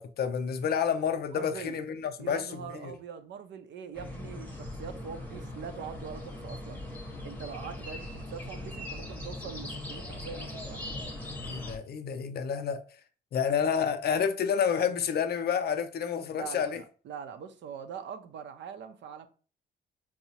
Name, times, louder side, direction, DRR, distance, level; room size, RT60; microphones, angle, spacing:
voice 1, 0.0-2.9 11.4-12.8 13.3-16.8, left 7 dB, 55° left, 0.5 m, -29 dB
voice 2, 1.3-1.8 2.2-6.8 7.2-10.9 16.3-19.3, right 7 dB, 65° right, 0.5 m, -43 dB
sound 1, 3.9-11.8, left 1 dB, 10° left, 0.8 m, -40 dB
4.7 x 2.0 x 2.7 m
cardioid pair, 90°, 20 cm